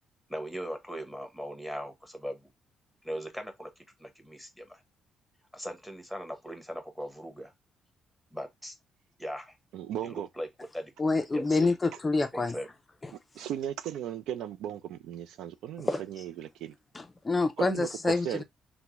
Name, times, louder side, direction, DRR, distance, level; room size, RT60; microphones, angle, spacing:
voice 1, 0.3-2.5 3.0-4.8 5.5-7.5 8.3-8.8 9.2-9.6 10.0-10.5 10.7-10.9 11.3-11.8 12.3-12.7, equal, ahead, 1.0 m, -39 dB
voice 2, 9.7-10.3 13.4-16.7 17.6-18.4, right 10 dB, 85° right, 0.3 m, -36 dB
voice 3, 11.0-12.5 15.9-16.0 16.9-18.4, left 3 dB, 25° left, 0.4 m, -27 dB
3.4 x 2.1 x 2.9 m
cardioid pair, 90°, 0 cm